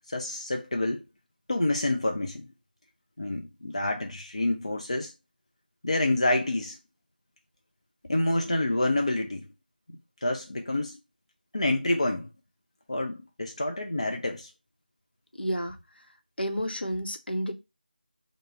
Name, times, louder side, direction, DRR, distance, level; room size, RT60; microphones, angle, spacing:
voice 1, 0.1-1.0 1.5-2.5 3.2-5.1 5.8-6.8 8.1-9.5 10.2-11.0 11.5-12.3 12.9-14.5, left 1 dB, 35° left, 0.4 m, -28 dB
voice 2, 15.4-15.8 16.4-17.5, equal, 75° left, 0.7 m, -30 dB
3.3 x 2.0 x 4.1 m
figure-of-eight pair, 170°, 5 cm